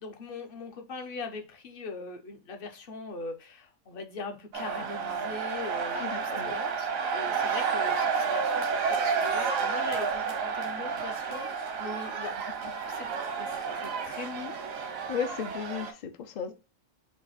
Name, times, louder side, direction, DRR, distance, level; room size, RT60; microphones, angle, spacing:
voice 1, 0.0-11.5 11.8-13.1 13.4-14.5, left 3 dB, 55° left, 0.7 m, -41 dB
sound 1, 4.5-15.9, right 5 dB, 90° right, 1.2 m, -31 dB
voice 2, 5.9-6.5 7.8-7.9 15.1-16.5, left 7 dB, 80° left, 0.4 m, -35 dB
4.7 x 2.6 x 4.0 m
omnidirectional pair, 1.4 m